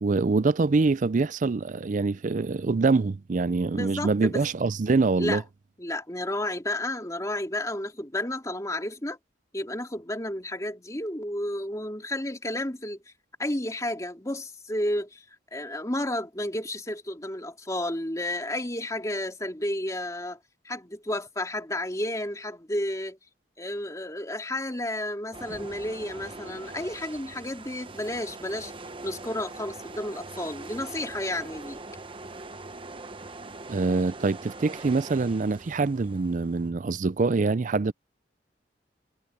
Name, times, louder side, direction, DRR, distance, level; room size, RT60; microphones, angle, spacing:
voice 1, 0.0-5.4 33.7-37.9, right 3 dB, 45° right, 0.4 m, -25 dB
voice 2, 3.7-4.4 5.2-5.4 5.8-9.2 9.5-13.0 13.4-15.2 15.5-20.4 20.6-23.2 23.6-28.7 29.0-31.8, left 1 dB, 20° left, 2.9 m, -32 dB
sound 1, 25.3-36.7, right 2 dB, 30° right, 1.0 m, -42 dB
head